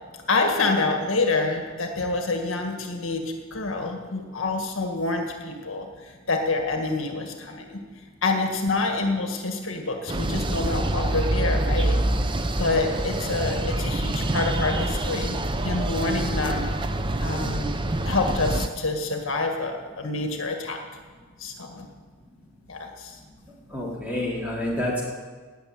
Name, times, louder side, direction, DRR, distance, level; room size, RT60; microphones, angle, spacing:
voice 1, 0.3-7.8 8.2-12.0 12.6-15.4 15.6-16.7 17.2-17.8 18.0-20.8 21.4-21.9 22.7-23.2, left 3 dB, 70° left, 3 dB, 1.7 m, -27 dB
sound 1, 10.1-18.7, right 1 dB, 25° right, 0.7 m, -26 dB
voice 2, 23.7-25.0, left 1 dB, 5° right, -5 dB, 3.7 m, -28 dB
18.0 x 6.9 x 8.9 m, 1.5 s
head